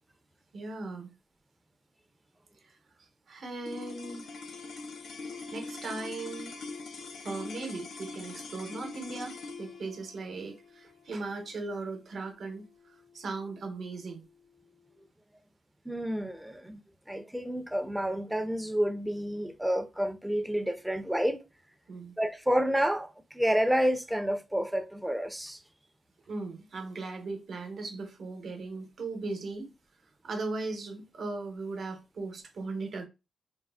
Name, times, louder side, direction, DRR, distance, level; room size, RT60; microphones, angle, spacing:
voice 1, 0.5-1.1 2.6-2.7 3.0-4.3 5.5-6.5 7.2-14.3 21.9-22.2 26.3-29.7 30.2-33.1, right 3 dB, 60° right, 0.8 m, -38 dB
sound 1, 3.6-14.1, left 4 dB, 70° left, 0.5 m, -43 dB
voice 2, 15.9-16.8 17.1-21.4 22.2-25.6, equal, 5° right, 0.4 m, -29 dB
3.5 x 2.0 x 2.2 m
cardioid pair, 95°, 0 cm